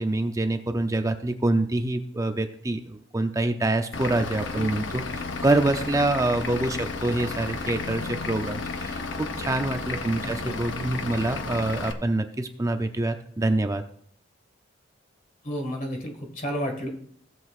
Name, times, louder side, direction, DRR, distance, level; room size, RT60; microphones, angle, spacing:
voice 1, 0.0-13.8, right 2 dB, 15° right, 7 dB, 0.5 m, -26 dB
Vehicle / Engine, 3.9-11.9, left 3 dB, 65° left, 0.8 m, -33 dB
voice 2, 10.2-10.6 15.4-16.9, equal, 40° left, 3 dB, 1.8 m, -32 dB
16.0 x 7.9 x 2.5 m, 0.63 s
head